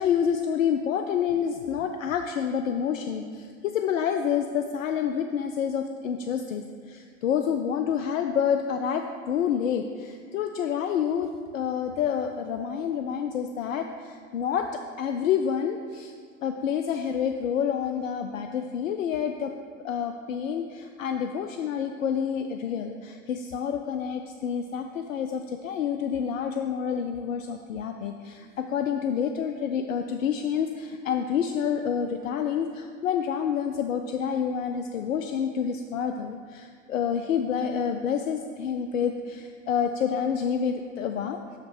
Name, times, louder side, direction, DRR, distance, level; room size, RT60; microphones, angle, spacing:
voice 1, 0.0-16.1 16.4-19.5 19.8-41.6, left 7 dB, 80° left, 6 dB, 0.5 m, -28 dB
6.1 x 5.1 x 5.9 m, 2.1 s
hypercardioid pair, 80°, 39 cm